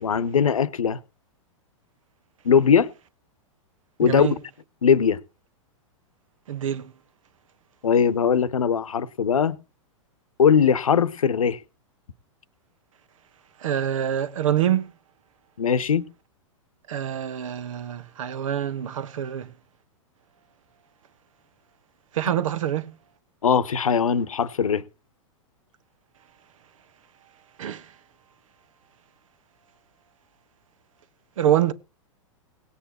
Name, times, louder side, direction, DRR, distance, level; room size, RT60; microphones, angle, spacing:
voice 1, 0.0-1.0 2.4-2.9 4.0-4.3 4.8-5.2 7.8-9.6 10.4-11.6 15.6-16.0 23.4-24.8, left 7 dB, 85° left, 1.1 m, -20 dB
voice 2, 4.0-4.3 6.5-6.9 13.6-14.9 16.9-19.5 22.1-22.9 27.6-27.9 31.4-31.7, right 10 dB, 70° right, 1.2 m, -25 dB
18.0 x 8.5 x 4.4 m
hypercardioid pair, 110°, 17 cm